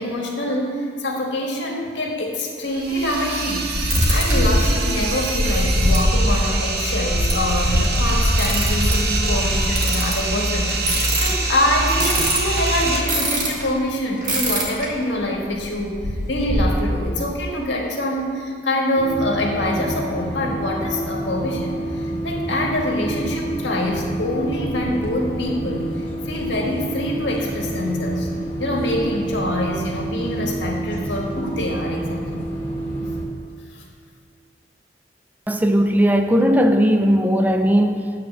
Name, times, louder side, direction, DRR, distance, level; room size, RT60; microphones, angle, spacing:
voice 1, 0.0-16.0 16.3-28.3 28.6-32.4 33.7-33.8, left 1 dB, 85° left, 0 dB, 1.6 m, -25 dB
sound 1, 2.6-13.0, right 2 dB, 60° right, 1.0 m, -24 dB
sound 2, 3.7-13.7 14.2-14.9 15.2-15.3 15.5-16.7, equal, 45° right, 1.9 m, -22 dB
sound 3, 18.9-33.2, right 1 dB, 10° left, 1.5 m, -28 dB
voice 2, 35.5-38.2, equal, 10° right, 6 dB, 0.4 m, -17 dB
9.7 x 4.2 x 7.2 m, 2.3 s
head